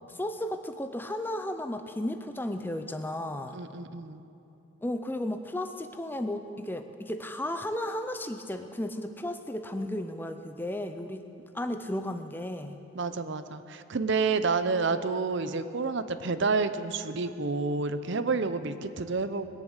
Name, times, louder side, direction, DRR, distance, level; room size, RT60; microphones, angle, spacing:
voice 1, 0.1-3.6 4.8-11.3 11.5-12.8, left 1 dB, 10° left, 8 dB, 0.5 m, -34 dB
voice 2, 3.5-4.2 12.9-19.5, right 4 dB, 55° right, 12 dB, 0.6 m, -29 dB
21.0 x 7.2 x 8.1 m, 2.9 s
head